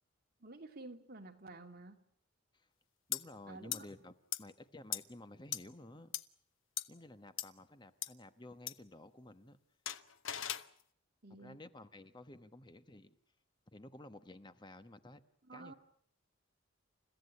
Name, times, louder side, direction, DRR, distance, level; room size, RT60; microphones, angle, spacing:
voice 1, 0.4-2.0 3.5-3.8 11.2-11.6 15.4-15.7, right 2 dB, 50° right, 4 dB, 2.7 m, -51 dB
sound 1, 3.1-3.2 3.7-3.8 4.3-4.4 4.9-5.0 5.5-5.6 6.1-6.2 6.8-6.9 7.4-7.5 8.0-8.1 8.7-8.8 9.9-10.7, left 10 dB, 90° left, 1.1 m, -37 dB
voice 2, 3.1-6.1 6.9-9.6 11.4-13.2 13.7-15.2 15.5-15.7, left 1 dB, 25° left, 10 dB, 1.1 m, -53 dB
29.5 x 15.5 x 9.7 m, 0.65 s
head